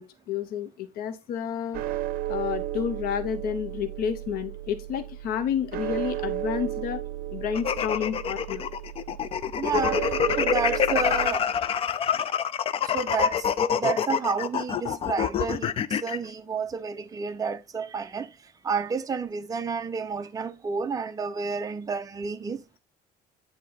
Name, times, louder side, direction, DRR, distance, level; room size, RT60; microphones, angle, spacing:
voice 1, 0.0-1.8 2.3-7.0 7.3-8.6, left 8 dB, 65° left, 0.8 m, -30 dB
sound 1, 1.7-11.3, right 14 dB, 60° right, 0.8 m, -34 dB
sound 2, 7.5-16.2, left 8 dB, 35° left, 0.5 m, -26 dB
voice 2, 9.6-10.0 10.4-11.4 12.8-18.4 18.6-22.6, right 5 dB, 20° right, 0.6 m, -30 dB
9.5 x 3.7 x 3.9 m
cardioid pair, 140°, 17 cm